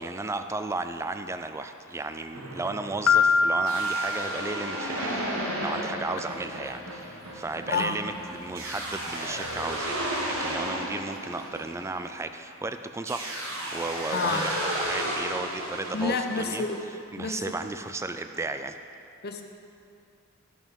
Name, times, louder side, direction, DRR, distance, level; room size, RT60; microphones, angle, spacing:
voice 1, 0.0-18.8, right 3 dB, 15° right, 8 dB, 0.3 m, -34 dB
sound 1, 2.3-12.5 13.1-16.8, right 1 dB, 75° right, 1.6 m, -33 dB
Piano, 3.1-5.0, left 4 dB, 90° left, 0.4 m, -24 dB
sound 2, 6.0-12.3, left 1 dB, 70° left, 1.2 m, -51 dB
voice 2, 15.9-16.8 17.2-17.4 19.2-19.4, left 4 dB, 50° left, 5 dB, 0.7 m, -28 dB
13.0 x 6.0 x 5.3 m, 2.6 s
head